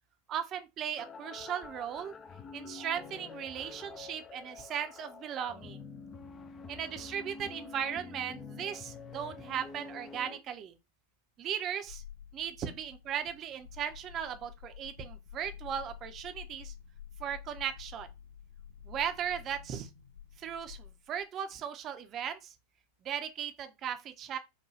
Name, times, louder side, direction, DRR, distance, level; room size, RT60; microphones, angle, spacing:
voice 1, 0.3-2.1 2.5-5.8 6.7-10.7 11.4-12.0 12.3-16.7 17.2-18.1 18.8-19.9 20.4-22.5 23.0-24.4, right 9 dB, 30° right, 0.6 m, -37 dB
sound 1, 1.0-10.4, left 4 dB, 25° left, 0.4 m, -47 dB
sound 2, 11.9-21.2, left 9 dB, 45° left, 2.1 m, -50 dB
4.9 x 2.2 x 2.8 m
figure-of-eight pair, 90°, 0 cm